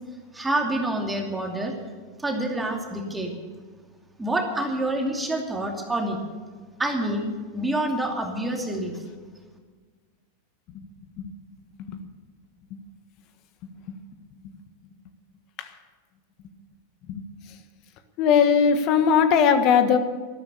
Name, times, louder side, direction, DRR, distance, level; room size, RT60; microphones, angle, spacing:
voice 1, 0.3-1.7 2.2-3.3 4.2-6.2 6.8-8.9, right 1 dB, 10° right, 1 dB, 2.6 m, -27 dB
voice 2, 18.2-20.0, left 7 dB, 45° left, 9 dB, 1.5 m, -19 dB
13.0 x 12.5 x 7.0 m, 1.5 s
hypercardioid pair, 95°, 0 cm